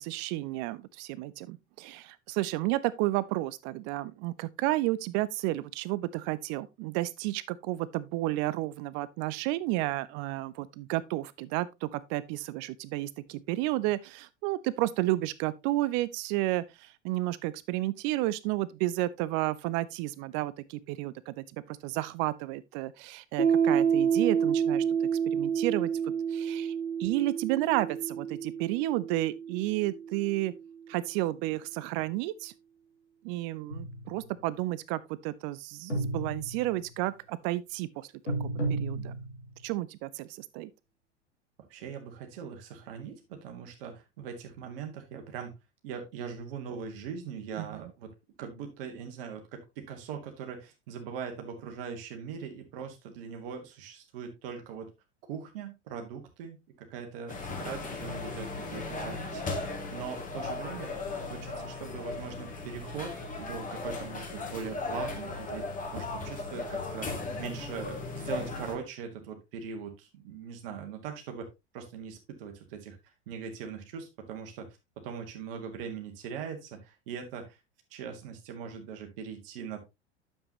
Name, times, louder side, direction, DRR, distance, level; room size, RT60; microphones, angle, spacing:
voice 1, 0.0-26.7 27.0-30.5 30.9-32.5 33.2-38.1 38.7-39.2 39.6-40.7 47.6-47.8, right 17 dB, 35° right, 0.4 m, -32 dB
Piano, 23.4-30.6, right 7 dB, 80° right, 1.6 m, -29 dB
sound 1, 33.7-34.3 35.9-36.9 38.3-39.6, right 2 dB, 80° left, 3.8 m, -33 dB
voice 2, 41.7-45.5 45.8-54.9 55.2-59.5 59.9-60.9 61.3-65.7 65.9-67.1 67.4-71.5 71.7-77.6 77.9-79.8, right 6 dB, 50° right, 1.7 m, -41 dB
sound 2, 57.3-68.7, left 3 dB, 20° left, 2.3 m, -37 dB
9.5 x 7.3 x 2.9 m
figure-of-eight pair, 80°, 35 cm